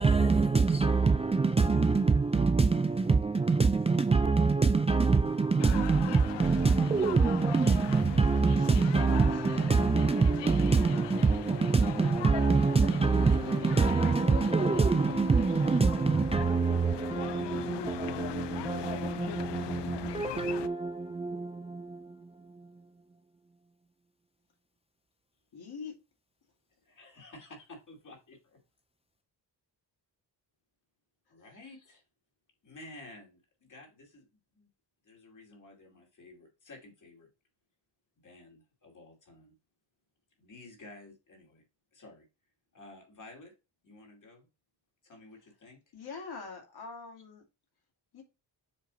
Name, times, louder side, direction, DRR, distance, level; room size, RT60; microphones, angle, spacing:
voice 1, 0.0-22.9, right 4 dB, 15° right, 0.3 m, -26 dB
sound 1, 5.6-20.7, left 12 dB, 80° left, 0.6 m, -40 dB
voice 2, 25.5-25.9 45.9-47.4 48.1-48.2, left 4 dB, 65° left, 2.2 m, -43 dB
voice 3, 26.8-27.6 27.9-28.4 31.3-32.0 32.6-34.3 34.5-34.7 35.0-37.3 38.2-39.5 40.4-41.6 41.9-42.3 42.7-43.5 43.8-44.5 45.0-45.8, left 2 dB, 45° left, 2.6 m, -52 dB
7.4 x 3.3 x 4.0 m
wide cardioid pair, 120°, 41 cm